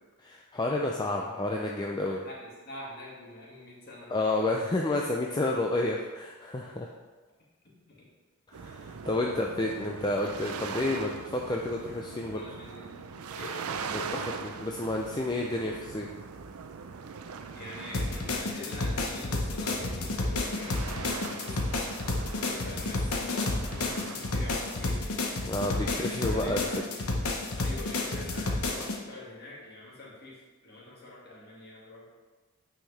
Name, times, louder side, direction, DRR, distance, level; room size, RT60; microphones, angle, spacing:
voice 1, 0.2-2.2 4.1-6.9 8.5-12.4 14.4-16.1 25.5-26.6, left 2 dB, 20° left, 0 dB, 0.4 m, -30 dB
voice 2, 2.2-4.4 7.6-8.1 9.1-9.3 12.4-13.0 13.3-14.5 17.5-21.7 22.3-25.1 25.9-26.8 27.6-32.1, left 1 dB, 45° left, -5 dB, 2.1 m, -45 dB
sound 1, 8.5-25.0, right 5 dB, 80° right, 0.5 m, -41 dB
sound 2, 17.9-29.0, left 2 dB, 80° left, 1.0 m, -31 dB
9.0 x 5.6 x 3.3 m, 1.3 s
head